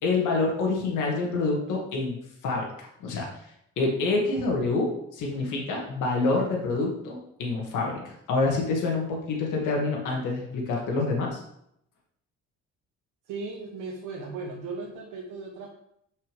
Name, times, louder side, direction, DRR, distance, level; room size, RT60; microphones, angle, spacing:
voice 1, 0.0-2.2 2.4-3.3 3.8-11.4, left 3 dB, 85° left, -1 dB, 2.2 m, -27 dB
voice 2, 13.3-15.7, right 4 dB, 90° right, -1 dB, 1.2 m, -36 dB
6.2 x 5.7 x 5.3 m, 0.74 s
cardioid pair, 90°, 30 cm